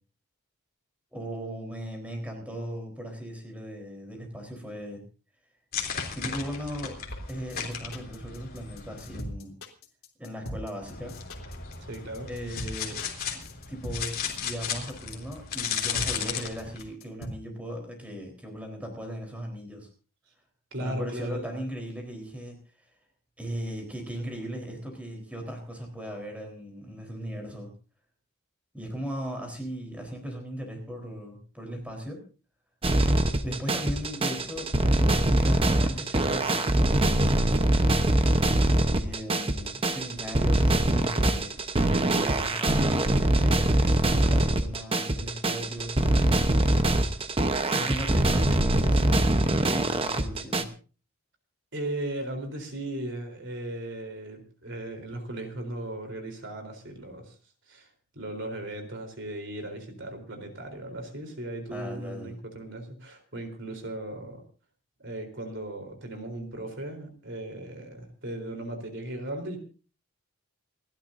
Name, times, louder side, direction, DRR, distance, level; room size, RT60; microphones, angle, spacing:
voice 1, 1.1-5.0 6.1-7.0 7.3-9.5 10.2-11.2 12.3-13.0 13.3-13.4 13.7-19.9 20.8-22.6 23.4-27.7 28.7-32.2 33.4-37.6 38.9-41.6 42.1-46.7 47.7-50.7 61.7-62.3, equal, 5° right, 2 dB, 4.0 m, -37 dB
sound 1, 5.7-9.2 10.8-16.8, left 7 dB, 40° left, 3.4 m, -35 dB
sound 2, 7.1-17.3, equal, 70° left, 3.1 m, -40 dB
voice 2, 11.9-12.3 20.7-21.6 51.7-57.3 57.7-57.9 58.1-64.4 65.0-69.6, right 1 dB, 55° right, 5 dB, 3.9 m, -37 dB
sound 3, 32.8-50.6, right 1 dB, 25° right, 1.0 m, -23 dB
29.0 x 12.0 x 2.7 m, 0.36 s
head